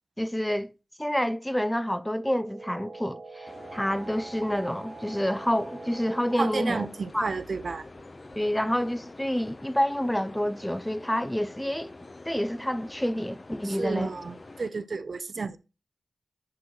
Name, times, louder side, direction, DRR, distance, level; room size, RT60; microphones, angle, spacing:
voice 1, 0.2-0.7 1.0-6.9 7.1-7.3 8.4-11.9 12.3-14.1, equal, 5° left, 0.5 m, -28 dB
sound 1, 2.1-7.0, right 3 dB, 85° right, 1.1 m, -44 dB
sound 2, 3.5-14.7, left 2 dB, 40° left, 0.8 m, -47 dB
voice 2, 6.4-7.8 13.6-15.6, right 4 dB, 60° right, 0.5 m, -31 dB
10.5 x 4.6 x 3.2 m
wide cardioid pair, 70°, 0 cm